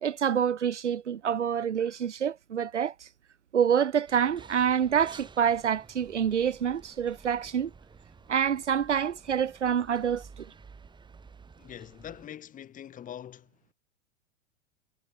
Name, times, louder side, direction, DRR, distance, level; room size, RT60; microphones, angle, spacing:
voice 1, 0.0-3.1 3.5-7.7 8.3-10.2, right 8 dB, 80° right, 0.7 m, -27 dB
sound 1, 4.1-12.3, right 5 dB, 15° right, 2.4 m, -52 dB
voice 2, 11.6-13.5, left 10 dB, 25° left, 1.6 m, -43 dB
figure-of-eight pair, 90°, 35 cm